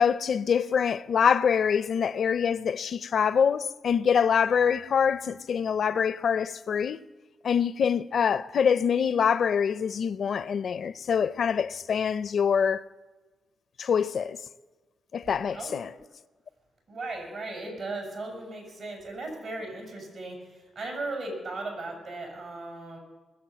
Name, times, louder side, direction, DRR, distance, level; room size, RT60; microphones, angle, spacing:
voice 1, 0.0-7.0 7.4-12.8 13.8-14.4 15.1-15.9, left 7 dB, 65° left, 0.4 m, -25 dB
voice 2, 15.5-16.0 16.9-23.0, right 2 dB, 65° right, 6.2 m, -37 dB
21.0 x 7.4 x 7.5 m
cardioid pair, 70°, 0 cm